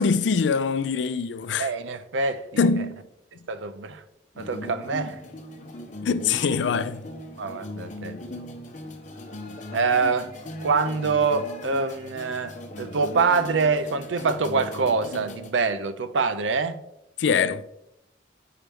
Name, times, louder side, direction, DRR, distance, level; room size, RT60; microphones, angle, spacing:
voice 1, 0.0-1.7 2.6-3.0 6.0-7.0 17.2-17.6, left 5 dB, 75° left, 0.4 m, -23 dB
voice 2, 1.6-2.9 3.5-4.0 4.4-5.2 7.4-8.1 9.7-10.3 10.6-16.8, right 4 dB, 85° right, 0.5 m, -25 dB
sound 1, 4.4-15.5, left 1 dB, 40° left, 0.8 m, -39 dB
8.8 x 4.7 x 3.5 m
head